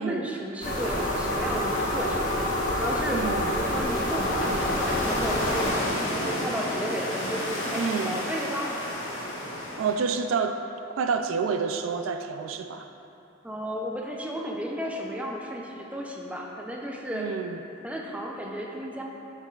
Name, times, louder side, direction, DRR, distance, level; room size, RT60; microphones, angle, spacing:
voice 1, 0.0-2.4 2.8-8.8 13.4-17.3 17.8-19.0, equal, 5° right, -1 dB, 0.5 m, -33 dB
sound 1, 0.6-5.7, left 1 dB, 40° left, 1.2 m, -27 dB
sound 2, 3.1-10.2, left 1 dB, 70° left, 1.4 m, -32 dB
voice 2, 3.1-3.5 7.7-8.2 9.8-10.6 10.9-12.9 17.1-17.6, right 5 dB, 75° right, 7 dB, 0.3 m, -28 dB
7.5 x 6.8 x 2.4 m, 2.8 s
head